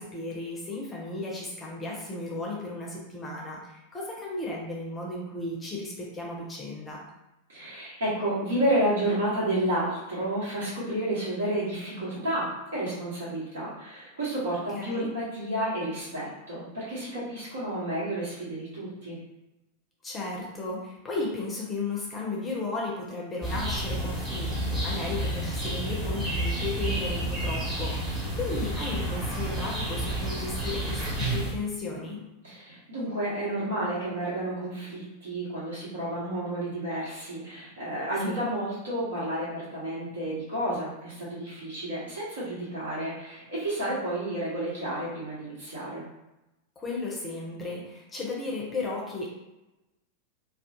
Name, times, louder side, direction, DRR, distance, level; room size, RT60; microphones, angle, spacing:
voice 1, 0.0-7.0 14.5-15.1 20.0-32.2 38.2-38.4 46.8-49.3, left 2 dB, 20° left, -3 dB, 0.6 m, -35 dB
voice 2, 7.5-19.2 32.4-46.0, right 1 dB, 65° right, -9 dB, 1.1 m, -31 dB
sound 1, 23.4-31.5, right 1 dB, 15° right, 1.0 m, -30 dB
2.3 x 2.0 x 2.8 m, 0.96 s
figure-of-eight pair, 90°, 0 cm